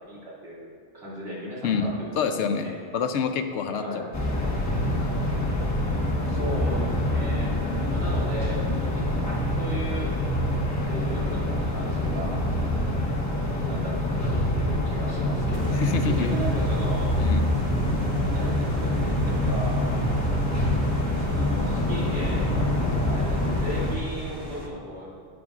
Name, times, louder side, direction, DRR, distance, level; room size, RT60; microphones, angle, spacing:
voice 1, 0.1-0.7 0.9-2.3 2.6-2.7 3.7-4.1 6.2-7.6 7.9-9.1 9.5-10.1 10.9-12.4 13.6-17.1 18.3-19.9 21.1-25.1, right 1 dB, 65° right, -8 dB, 2.6 m, -36 dB
voice 2, 2.2-4.0 15.8-16.3 17.2-17.5, left 6 dB, 80° left, 8 dB, 0.9 m, -27 dB
sound 1, 4.1-24.0, left 1 dB, 15° left, 1.0 m, -25 dB
sound 2, 15.5-24.7, right 1 dB, 45° right, 0.9 m, -39 dB
11.0 x 10.0 x 2.4 m, 2.1 s
omnidirectional pair, 1.2 m